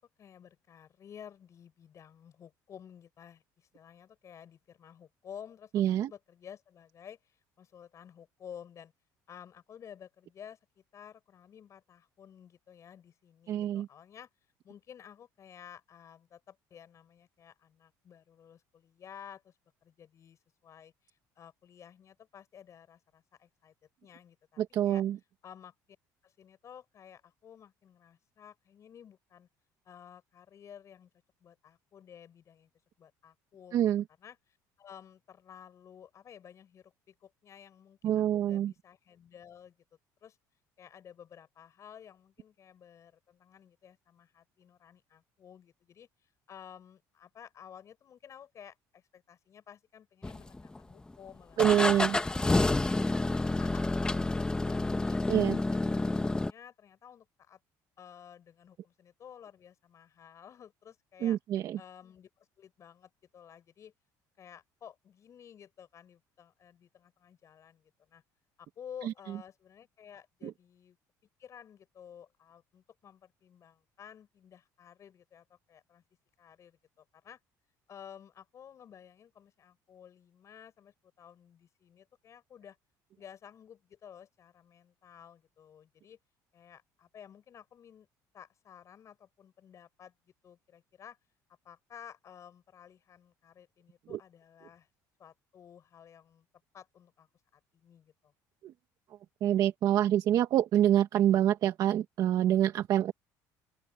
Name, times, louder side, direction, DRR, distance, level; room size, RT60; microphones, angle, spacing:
voice 1, 0.2-8.9 9.3-14.3 14.6-19.5 19.8-23.7 24.0-25.0 25.4-25.7 26.2-29.5 29.8-31.1 31.4-32.7 33.0-33.9 34.2-39.8 40.2-40.4 40.8-46.1 46.5-52.4 53.0-53.1 53.6-55.2 55.7-57.6 58.0-61.4 61.8-63.9 64.4-68.2 68.6-71.0 71.4-76.0 76.4-77.4 77.9-82.8 83.2-86.2 86.5-88.1 88.3-90.1 90.4-91.2 91.6-94.9 95.2-96.5 96.7-97.3 97.5-98.3, left 8 dB, 45° left, 7.7 m, -53 dB
voice 2, 5.7-6.1 13.5-13.9 24.6-25.2 33.7-34.0 38.0-38.7 51.6-52.2 55.3-55.6 61.2-61.8 69.0-69.1 70.4-70.5 94.1-94.2 98.6-98.7 99.4-103.1, right 11 dB, 60° right, 1.6 m, -26 dB
sound 1, 50.2-50.9 51.6-56.5, left 2 dB, 10° left, 1.3 m, -29 dB
open air
cardioid pair, 120°, 7 cm